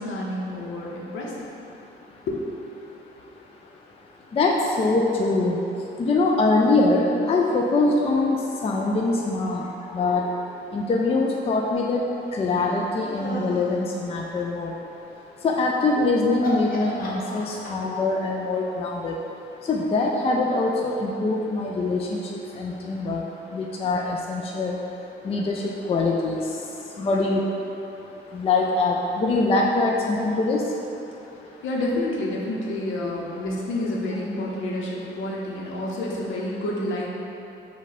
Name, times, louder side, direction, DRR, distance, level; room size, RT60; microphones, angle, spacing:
voice 1, 0.0-1.5 2.3-2.4 31.6-37.1, left 1 dB, 75° left, -3 dB, 0.8 m, -29 dB
voice 2, 4.3-5.6 6.0-9.6 9.9-10.3 10.7-12.0 12.3-14.7 15.4-19.2 19.7-22.2 22.6-23.2 23.5-24.8 25.2-26.4 27.0-27.4 28.3-30.6 33.0-33.1, left 3 dB, 30° left, -1 dB, 0.4 m, -23 dB
sound 1, 12.4-13.8 15.8-16.0 16.4-18.0, left 2 dB, 45° left, 0.9 m, -34 dB
5.0 x 2.3 x 4.1 m, 2.9 s
cardioid pair, 90°, 20 cm